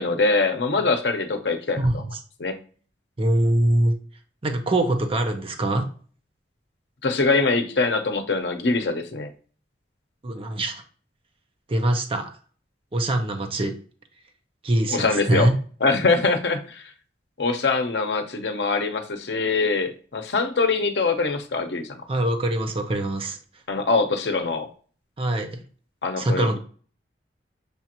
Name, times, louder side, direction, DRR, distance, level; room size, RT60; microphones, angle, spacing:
voice 1, 0.0-2.0 2.4-2.5 7.0-9.3 14.9-15.5 15.8-16.9 17.4-22.0 23.7-24.7 26.0-26.6, left 3 dB, 70° left, 6 dB, 0.7 m, -23 dB
voice 2, 1.8-2.2 3.2-4.0 4.4-5.9 10.2-10.8 11.7-12.3 12.9-13.7 14.6-15.6 22.1-23.4 25.2-25.6 26.2-26.6, right 1 dB, 30° right, 5 dB, 0.6 m, -23 dB
6.7 x 2.5 x 2.8 m, 0.42 s
head